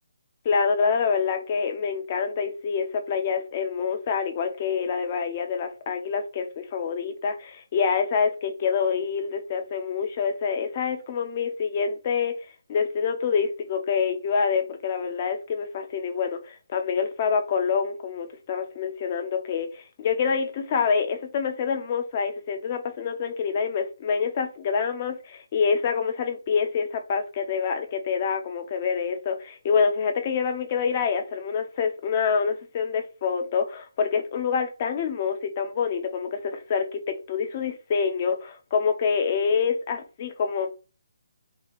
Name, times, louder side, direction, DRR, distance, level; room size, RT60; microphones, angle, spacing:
voice 1, 0.4-12.3 12.7-40.7, left 6 dB, 35° left, 0.6 m, -26 dB
2.8 x 2.2 x 4.0 m
hypercardioid pair, 160°, 0 cm